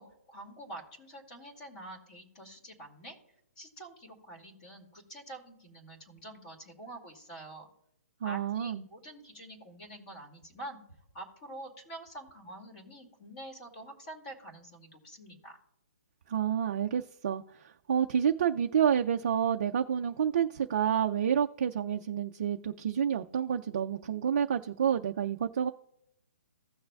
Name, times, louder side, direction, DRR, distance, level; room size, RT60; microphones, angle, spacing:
voice 1, 0.0-3.2 3.6-7.7 8.2-10.8 11.1-15.6, right 1 dB, 30° left, 2.2 m, -47 dB
voice 2, 8.2-8.9 16.3-25.7, right 8 dB, 35° right, 0.4 m, -29 dB
16.0 x 6.5 x 2.3 m
hypercardioid pair, 170°, 9 cm